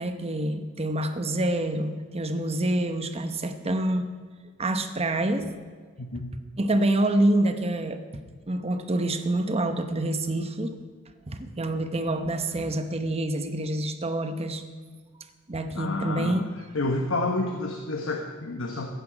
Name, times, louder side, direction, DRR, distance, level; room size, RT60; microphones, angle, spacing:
voice 1, 0.0-4.1 4.6-5.5 6.6-8.0 8.5-10.8 11.3-14.6 15.5-16.4, right 1 dB, 30° right, 8 dB, 0.9 m, -27 dB
voice 2, 6.0-6.3 15.7-16.4 16.7-18.9, left 2 dB, 70° left, 3 dB, 1.1 m, -29 dB
15.0 x 10.5 x 5.0 m, 1.5 s
head